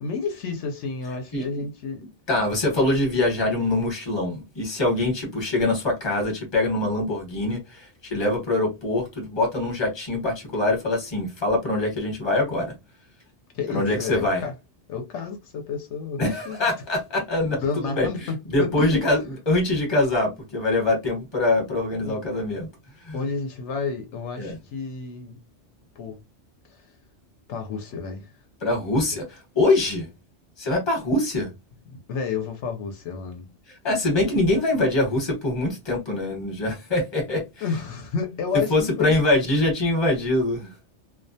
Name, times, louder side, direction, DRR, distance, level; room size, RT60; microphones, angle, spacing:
voice 1, 0.0-2.0 13.5-14.5 14.9-16.7 17.6-19.0 22.0-22.2 23.1-25.4 26.0-26.2 26.7-26.9 27.5-28.3 31.9-33.5 37.6-39.2, left 5 dB, 75° left, 0.9 m, -30 dB
voice 2, 1.3-1.6 2.3-12.7 13.7-14.4 16.2-22.7 23.0-23.2 24.4-24.6 28.6-30.1 30.6-31.5 33.8-37.6 38.5-40.7, left 2 dB, 25° left, 0.9 m, -24 dB
2.3 x 2.2 x 2.6 m
omnidirectional pair, 1.2 m